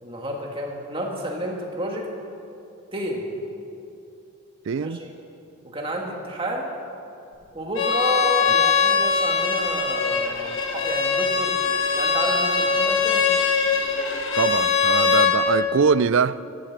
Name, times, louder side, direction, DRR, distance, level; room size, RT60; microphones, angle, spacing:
voice 1, 0.0-2.1 2.9-3.2 4.7-5.1 5.6-6.7 7.5-11.6 11.9-13.3, right 1 dB, 25° right, 0 dB, 1.7 m, -30 dB
voice 2, 4.7-5.0 14.3-16.5, right 6 dB, 55° right, 17 dB, 0.3 m, -22 dB
Bowed string instrument, 7.7-15.4, left 5 dB, 60° left, 1.5 m, -21 dB
15.0 x 8.8 x 7.3 m, 2.8 s
head